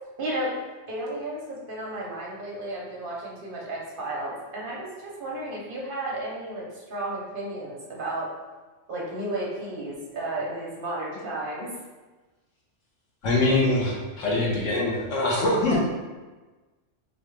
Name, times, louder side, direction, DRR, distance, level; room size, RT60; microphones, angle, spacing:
voice 1, 0.2-0.5 0.9-8.3 8.9-11.7 15.7-15.8, right 1 dB, 50° right, -4 dB, 0.9 m, -33 dB
voice 2, 13.2-15.8, left 2 dB, 85° left, -4 dB, 1.2 m, -23 dB
3.9 x 2.3 x 3.1 m, 1.2 s
omnidirectional pair, 1.3 m